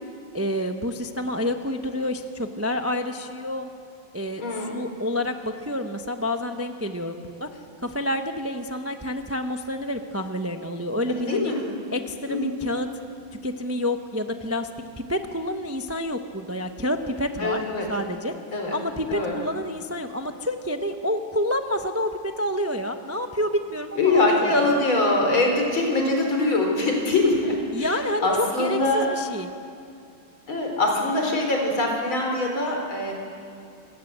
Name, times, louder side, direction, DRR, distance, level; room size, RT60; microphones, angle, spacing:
voice 1, 0.3-3.7 4.1-11.5 11.9-12.9 13.4-14.7 15.0-17.6 17.9-18.3 18.7-24.5 27.7-29.5, left 1 dB, 15° right, 6 dB, 0.5 m, -28 dB
voice 2, 4.4-4.7 11.1-11.6 12.3-12.5 17.4-17.8 18.5-18.7 19.1-19.3 24.0-27.9 28.2-29.1 30.5-33.1, left 2 dB, 75° left, 0 dB, 5.1 m, -23 dB
26.5 x 18.0 x 8.1 m, 2.6 s
omnidirectional pair, 2.2 m